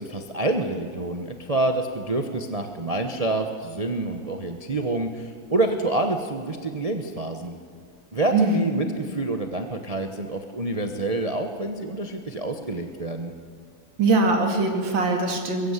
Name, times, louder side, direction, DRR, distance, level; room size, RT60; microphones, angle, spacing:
voice 1, 0.0-7.6 8.1-13.3, right 2 dB, 25° right, 5 dB, 0.8 m, -27 dB
voice 2, 8.3-8.7 14.0-15.7, right 3 dB, 75° right, 3 dB, 3.0 m, -22 dB
22.5 x 15.0 x 8.2 m, 2.1 s
omnidirectional pair, 2.1 m